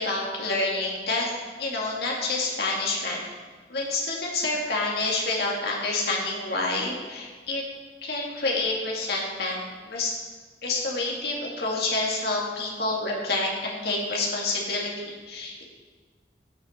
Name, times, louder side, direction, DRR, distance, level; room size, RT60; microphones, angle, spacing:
voice 1, 0.0-1.3 1.6-3.2 3.7-7.6 8.0-10.2 10.6-15.6, left 2 dB, 65° left, -2 dB, 2.1 m, -28 dB
15.5 x 6.9 x 4.4 m, 1.5 s
head